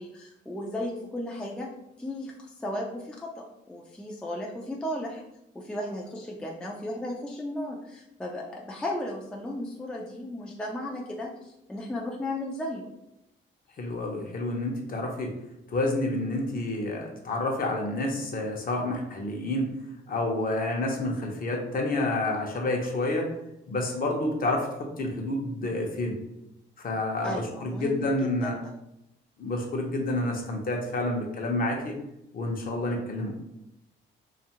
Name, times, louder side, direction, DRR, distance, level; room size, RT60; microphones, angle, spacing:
voice 1, 0.0-1.7 2.0-5.2 5.5-12.9 27.2-28.5, left 1 dB, 5° left, -1 dB, 0.4 m, -35 dB
voice 2, 13.8-15.3 15.7-19.7 20.1-23.3 23.7-26.2 26.8-28.6 29.4-32.0 32.3-33.3, left 2 dB, 45° left, 1 dB, 0.7 m, -29 dB
2.6 x 2.4 x 2.9 m, 0.85 s
cardioid pair, 90°, 20 cm